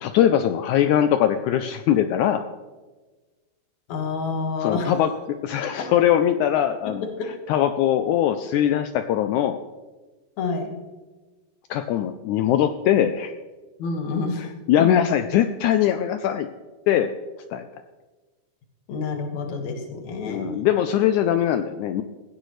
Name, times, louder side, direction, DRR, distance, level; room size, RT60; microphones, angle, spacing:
voice 1, 0.0-2.4 4.6-9.6 11.7-13.3 14.4-16.5 16.9-17.1 17.5-17.7 20.3-22.0, left 10 dB, 85° left, 9 dB, 1.7 m, -21 dB
voice 2, 3.9-4.9 5.8-5.9 10.4-10.7 13.8-14.4 14.8-15.0 18.9-20.7, left 4 dB, 55° left, 3 dB, 2.8 m, -28 dB
18.0 x 15.5 x 3.2 m, 1.3 s
omnidirectional pair, 4.1 m